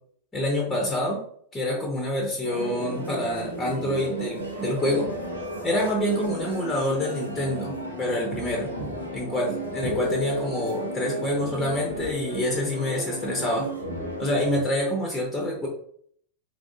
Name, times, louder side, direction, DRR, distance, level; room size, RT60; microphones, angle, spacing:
voice 1, 0.3-1.2 1.5-5.1 5.6-8.7 9.1-13.7 14.2-15.7, left 1 dB, 15° left, -1 dB, 0.7 m, -27 dB
sound 1, 2.4-14.6, equal, 90° left, 0.8 m, -33 dB
3.2 x 2.6 x 2.5 m, 0.63 s
figure-of-eight pair, 90°, 0 cm